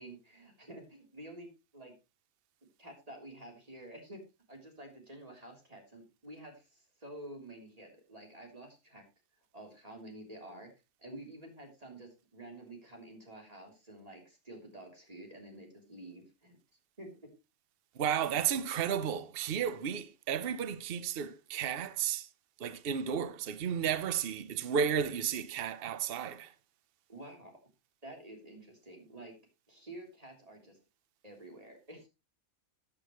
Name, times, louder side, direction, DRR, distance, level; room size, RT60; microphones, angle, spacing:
voice 1, 0.0-1.9 2.8-4.2 4.5-9.0 9.5-10.7 11.0-16.6 17.0-17.1 27.1-27.5 28.0-29.3 29.7-30.8 31.2-32.1, right 1 dB, 25° right, 3.5 m, -49 dB
voice 2, 18.0-22.3 22.6-26.5, right 8 dB, 50° right, 0.9 m, -33 dB
15.0 x 8.6 x 3.1 m
omnidirectional pair, 1.5 m